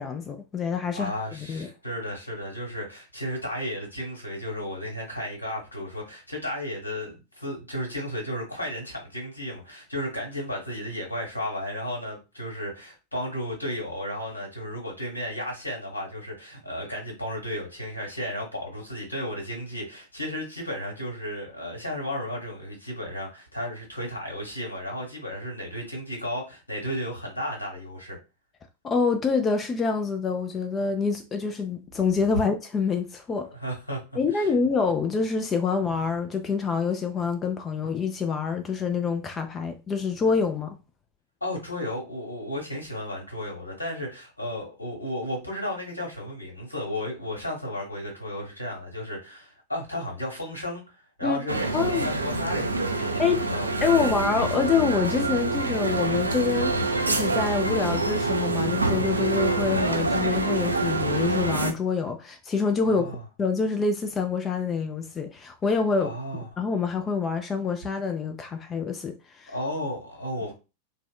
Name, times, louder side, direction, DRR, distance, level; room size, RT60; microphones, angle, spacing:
voice 1, 0.0-1.7 28.8-33.5 34.2-40.8 51.2-51.4 51.7-52.1 53.2-53.4 53.8-66.1 66.6-69.5, left 5 dB, 20° left, 0.4 m, -26 dB
voice 2, 0.9-28.2 33.5-34.0 34.3-34.5 41.4-54.1 62.8-63.2 66.0-66.5 69.5-70.5, left 1 dB, 80° left, 1.1 m, -34 dB
sound 1, 51.5-61.7, right 2 dB, 80° right, 0.3 m, -26 dB
3.5 x 2.1 x 2.2 m
figure-of-eight pair, 90°, 0 cm